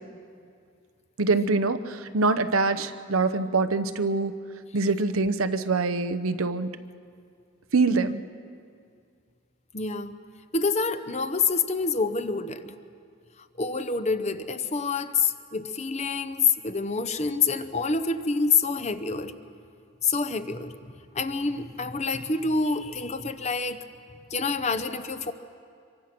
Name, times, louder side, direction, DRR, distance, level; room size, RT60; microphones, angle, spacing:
voice 1, 1.2-4.4 4.7-6.7 7.7-8.2, right 3 dB, 90° right, 11 dB, 0.9 m, -24 dB
voice 2, 9.7-10.1 10.5-12.7 13.6-19.3 20.0-23.8 24.3-25.3, left 4 dB, 30° left, 11 dB, 0.8 m, -27 dB
25.5 x 23.5 x 6.0 m, 2.3 s
head